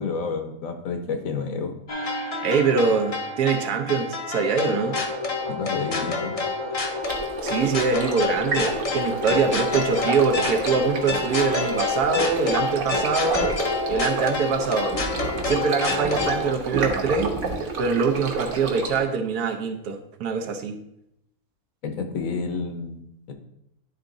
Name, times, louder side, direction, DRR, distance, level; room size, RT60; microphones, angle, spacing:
voice 1, 0.0-1.7 5.5-6.4 21.8-23.0 23.3-23.4, left 5 dB, 65° left, 5 dB, 1.2 m, -30 dB
sound 1, 1.9-16.5, left 3 dB, 40° left, 0.5 m, -28 dB
voice 2, 2.4-5.0 7.4-13.5 13.9-14.9 15.4-17.3 17.8-20.8, right 5 dB, 90° right, 4 dB, 1.4 m, -24 dB
Stream, 7.0-19.0, right 4 dB, 65° right, 1.5 m, -31 dB
10.5 x 3.6 x 3.8 m, 0.80 s
omnidirectional pair, 1.6 m